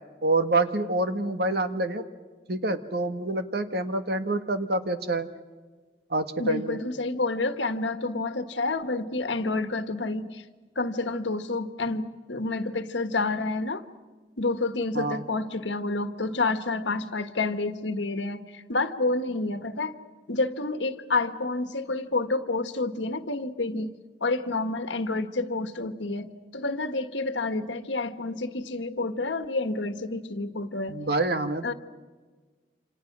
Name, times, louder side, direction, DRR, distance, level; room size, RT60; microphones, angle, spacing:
voice 1, 0.2-2.0 2.5-5.3 6.1-6.8 14.9-15.2 30.9-31.7, right 2 dB, 60° right, 8 dB, 1.6 m, -27 dB
voice 2, 6.4-10.4 10.7-13.8 14.4-20.0 20.3-23.9 24.2-31.0 31.6-31.7, left 3 dB, 80° left, 9 dB, 1.5 m, -29 dB
28.0 x 27.0 x 6.1 m, 1.4 s
head